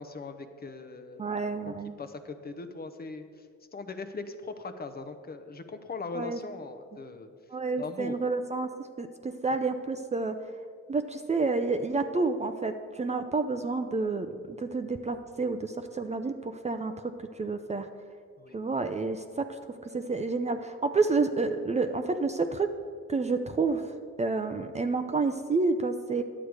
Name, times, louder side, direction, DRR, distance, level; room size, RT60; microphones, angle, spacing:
voice 1, 0.0-1.4 1.6-3.3 3.7-7.3 7.8-8.2 18.4-18.6, left 3 dB, 30° left, 9 dB, 0.7 m, -40 dB
voice 2, 1.2-2.0 6.1-6.4 7.5-8.7 9.0-10.4 10.9-17.1 17.4-17.9 18.5-22.7 23.1-23.9 24.2-26.2, right 3 dB, 25° right, 8 dB, 0.5 m, -29 dB
10.0 x 7.9 x 4.7 m, 2.2 s
cardioid pair, 90°, 30 cm